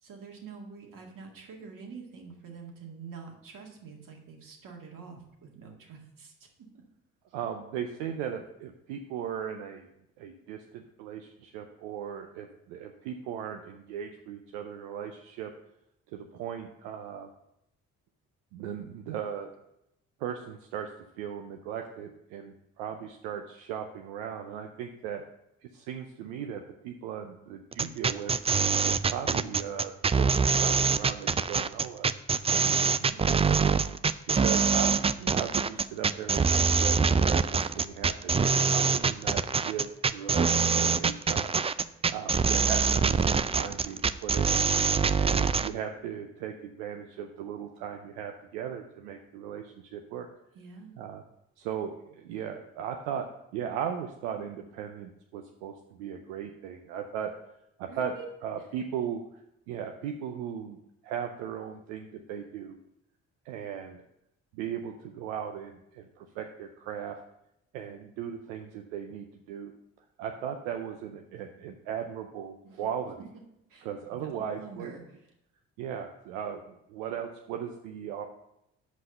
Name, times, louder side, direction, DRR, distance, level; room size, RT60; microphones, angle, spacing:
voice 1, 0.0-6.8 32.4-33.4 50.5-51.0 57.9-58.3 72.6-72.9 73.7-75.2, right 5 dB, 65° right, 1 dB, 2.1 m, -46 dB
voice 2, 7.3-9.9 10.2-15.5 16.1-17.3 18.5-19.5 20.2-20.9 21.2-25.2 25.6-28.3 28.9-32.1 34.3-41.5 42.1-44.6 45.2-50.3 51.0-51.2 51.6-53.3 53.5-57.3 57.8-58.1 58.4-60.8 61.0-62.8 63.4-64.0 64.5-67.2 67.7-69.7 70.2-73.3 73.8-74.9 75.8-78.3, right 8 dB, 90° right, 4 dB, 0.6 m, -37 dB
sound 1, 27.7-45.7, right 5 dB, 20° right, 0.3 m, -24 dB
6.3 x 5.5 x 6.6 m, 0.80 s
hypercardioid pair, 50°, 35 cm